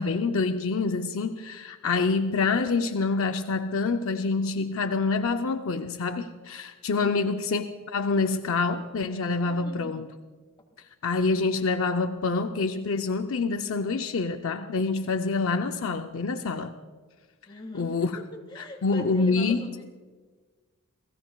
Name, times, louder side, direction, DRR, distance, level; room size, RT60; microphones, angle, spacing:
voice 1, 0.0-10.1 11.0-16.7 17.7-18.1 18.6-19.6, left 4 dB, 65° left, 7 dB, 0.6 m, -26 dB
voice 2, 7.0-7.4 9.4-10.1 17.5-19.8, left 1 dB, 20° left, 2 dB, 2.0 m, -42 dB
29.5 x 17.0 x 2.3 m, 1.4 s
head